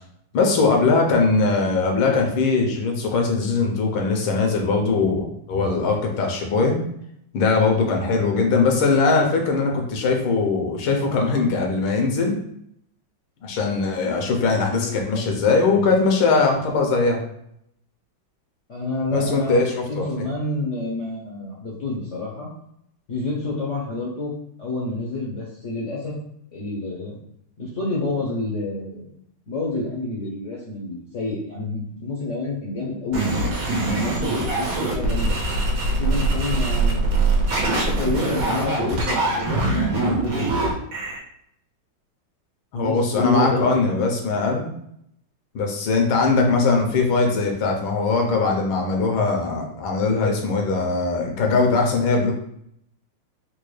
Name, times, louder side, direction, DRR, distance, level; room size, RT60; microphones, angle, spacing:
voice 1, 0.3-6.8 7.3-12.4 13.4-17.2 19.1-20.3 42.7-44.7 45.5-52.3, left 4 dB, 85° left, 2 dB, 1.6 m, -21 dB
voice 2, 14.7-15.2 15.7-15.9 18.7-22.5 23.1-24.3 24.6-26.1 26.5-27.2 27.6-29.1 29.5-33.3 33.9-35.4 36.0-37.1 37.7-40.7 42.7-43.8, left 2 dB, 70° left, -4 dB, 0.7 m, -28 dB
sound 1, 33.1-41.2, right 2 dB, 90° right, 1.8 m, -23 dB
4.4 x 2.2 x 3.1 m, 0.73 s
omnidirectional pair, 2.2 m